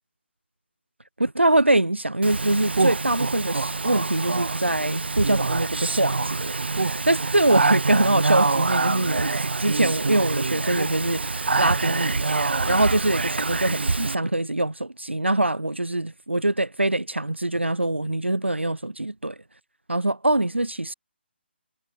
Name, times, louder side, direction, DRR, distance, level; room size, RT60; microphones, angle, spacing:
voice 1, 1.2-19.4 19.9-20.9, right 1 dB, 85° right, 2.1 m, -24 dB
Speech, 2.2-14.1, right 3 dB, 65° right, 4.9 m, -25 dB
figure-of-eight pair, 140°, 6 cm